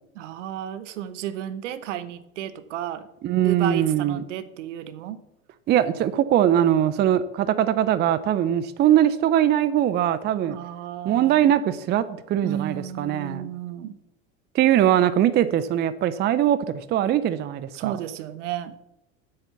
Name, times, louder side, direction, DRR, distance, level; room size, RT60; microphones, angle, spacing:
voice 1, 0.1-3.1 3.4-5.2 10.5-11.5 12.4-14.0 17.7-18.8, right 11 dB, 65° right, 1.0 m, -33 dB
voice 2, 3.2-4.2 5.7-10.6 11.0-13.5 14.5-18.0, right 11 dB, 25° right, 0.5 m, -21 dB
8.1 x 6.5 x 7.0 m
hypercardioid pair, 85°, 39 cm